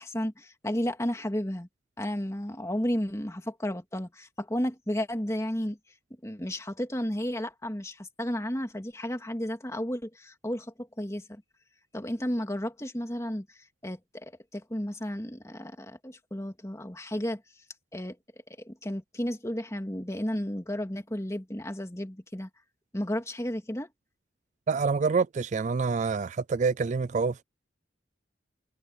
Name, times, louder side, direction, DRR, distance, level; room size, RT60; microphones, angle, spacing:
voice 1, 0.0-1.7 2.0-5.8 6.2-11.4 11.9-13.5 13.8-17.4 17.9-18.2 18.6-22.5 22.9-23.9, equal, 15° left, 2.3 m, -33 dB
voice 2, 24.7-27.4, right 4 dB, 40° right, 0.3 m, -27 dB
head